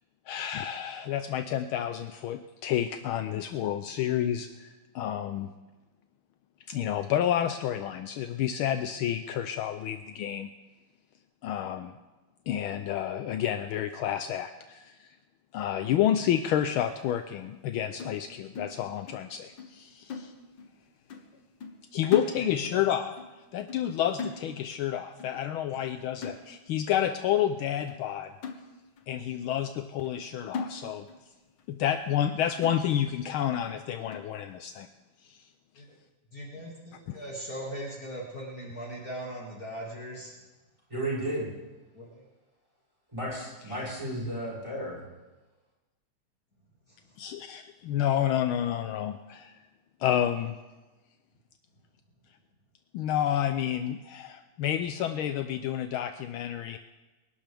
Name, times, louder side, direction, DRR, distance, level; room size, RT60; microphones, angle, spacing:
voice 1, 0.3-4.7 4.9-5.5 6.7-10.5 11.4-11.9 12.5-15.1 15.5-20.3 21.9-23.2 23.5-28.3 29.1-31.1 31.7-34.9 35.3-35.4 37.1-37.2 43.6-44.0 47.2-49.5 50.0-50.6 52.9-56.8, left 10 dB, 75° left, 8 dB, 1.4 m, -30 dB
sound 1, 18.0-19.3 19.6-19.8 20.1-20.8 21.1-21.3 21.6-22.9 23.2-23.4 23.7-23.9 24.2-24.9 25.2-25.4 25.7-25.9 26.2-26.9 27.3-27.4 27.9-28.0 28.4-29.1 29.5-29.6 30.0-30.2 30.5-31.3 31.6-31.7 32.1-32.2 32.6-33.2 33.7-33.8 34.1-34.3, left 4 dB, 60° left, 1.8 m, -39 dB
voice 2, 22.4-22.8 25.7-25.8 35.7-35.8 36.3-40.3 41.9-42.3 46.9-47.0, right 1 dB, 40° left, -4 dB, 2.7 m, -40 dB
voice 3, 40.9-41.5 43.1-45.0, right 1 dB, 15° right, -7 dB, 6.6 m, -33 dB
26.0 x 12.0 x 3.5 m, 1.1 s
omnidirectional pair, 2.4 m